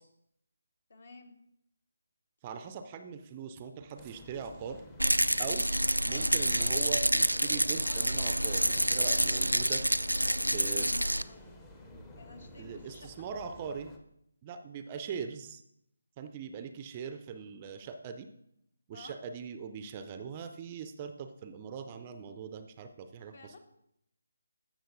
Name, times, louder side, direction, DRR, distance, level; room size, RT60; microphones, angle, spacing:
voice 1, 0.9-1.3 10.2-11.4 12.1-13.1 18.9-19.2 23.3-23.6, left 3 dB, 50° left, 7 dB, 1.2 m, -52 dB
voice 2, 2.4-4.8 5.4-5.7 6.0-9.8 10.5-10.9 12.6-13.9 14.4-15.6 16.2-18.3 18.9-23.6, right 6 dB, 25° right, 8 dB, 0.4 m, -41 dB
sound 1, 4.0-14.0, left 1 dB, 10° left, 0.7 m, -51 dB
Rattle, 5.0-11.2, right 1 dB, 90° right, 0.3 m, -28 dB
14.0 x 6.3 x 2.6 m, 0.76 s
figure-of-eight pair, 150°, 0 cm